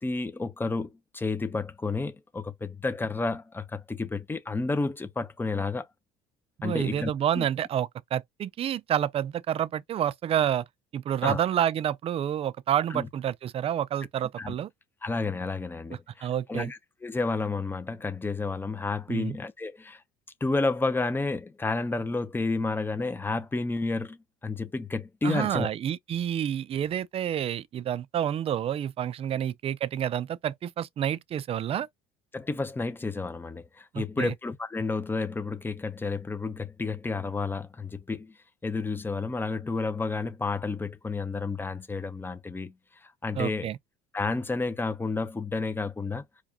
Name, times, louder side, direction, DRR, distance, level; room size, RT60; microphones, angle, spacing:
voice 1, 0.0-5.9 6.6-7.5 11.2-11.4 12.9-13.1 14.4-14.5 15.0-20.0 20.4-25.7 32.3-38.3 38.6-42.7 43.0-43.7 44.1-46.2, left 3 dB, 10° left, 0.6 m, -31 dB
voice 2, 6.6-10.6 10.9-14.7 16.2-16.7 19.1-19.4 25.2-31.9 33.9-34.3 43.3-43.8, right 10 dB, 30° right, 0.4 m, -29 dB
4.7 x 2.3 x 2.7 m
cardioid pair, 115°, 19 cm